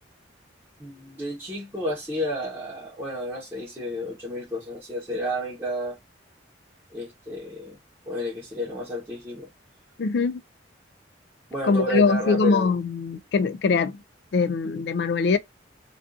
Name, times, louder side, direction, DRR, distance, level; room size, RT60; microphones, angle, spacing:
voice 1, 0.8-6.0 6.9-7.8 8.1-9.5 11.5-12.7, left 1 dB, 15° right, 0.8 m, -31 dB
voice 2, 10.0-10.4 11.7-14.0 14.3-15.4, left 4 dB, 60° left, 0.3 m, -22 dB
2.4 x 2.3 x 2.4 m
head